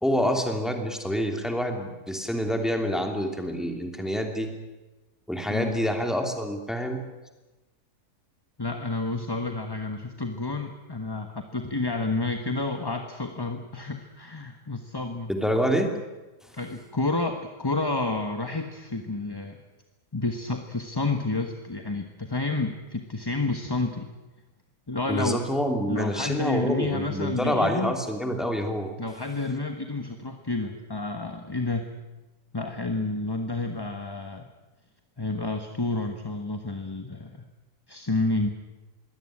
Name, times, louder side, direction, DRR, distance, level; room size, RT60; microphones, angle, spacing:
voice 1, 0.0-4.5 5.3-7.0 15.3-15.9 25.1-28.9, equal, ahead, 4 dB, 2.9 m, -27 dB
voice 2, 5.5-5.8 8.6-15.3 16.5-19.6 20.1-24.1 24.9-25.4 25.9-28.0 29.0-31.9 32.5-34.5 35.2-37.4 37.9-38.5, left 2 dB, 15° left, 5 dB, 1.2 m, -30 dB
22.5 x 17.0 x 10.0 m, 1.1 s
omnidirectional pair, 1.7 m